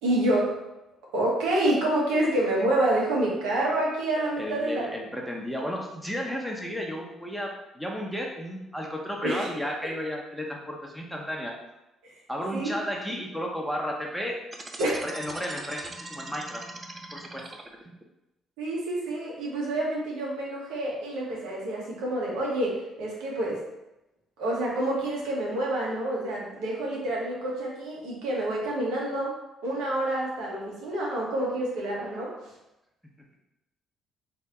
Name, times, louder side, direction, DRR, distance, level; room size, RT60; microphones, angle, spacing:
voice 1, 0.0-0.6 1.1-4.8 9.2-9.5 12.0-12.1 12.5-12.7 14.8-14.9 18.6-23.6 24.4-29.3 29.6-32.3, right 1 dB, 80° right, -4 dB, 1.2 m, -28 dB
voice 2, 4.4-11.6 12.3-14.4 14.8-16.7 17.1-17.6, equal, ahead, -1 dB, 0.9 m, -33 dB
sound 1, 14.5-18.0, right 2 dB, 30° right, 0.6 m, -41 dB
4.0 x 2.8 x 3.6 m, 0.93 s
supercardioid pair, 60°, 0 cm